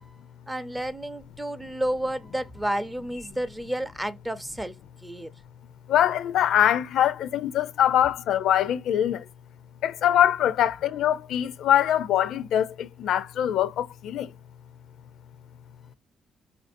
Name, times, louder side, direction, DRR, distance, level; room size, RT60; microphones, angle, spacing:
voice 1, 0.5-4.8 5.0-5.3, right 1 dB, 10° right, 0.5 m, -31 dB
voice 2, 5.9-9.2 9.8-14.3, left 11 dB, 75° left, 0.4 m, -23 dB
4.5 x 2.5 x 2.5 m
cardioid pair, 90°, 0 cm